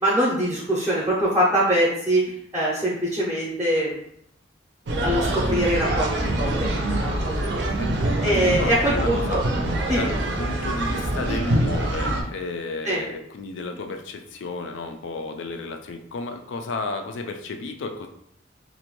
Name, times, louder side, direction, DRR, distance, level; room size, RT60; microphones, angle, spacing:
voice 1, 0.0-4.0 5.0-7.5 8.2-9.4 9.9-10.1 12.8-13.0, equal, 15° right, -6 dB, 0.5 m, -23 dB
sound 1, 4.9-12.2, right 1 dB, 75° right, 0.5 m, -25 dB
voice 2, 7.8-9.4 9.9-18.1, left 3 dB, 90° left, 6 dB, 0.4 m, -33 dB
2.5 x 2.2 x 3.0 m, 0.71 s
head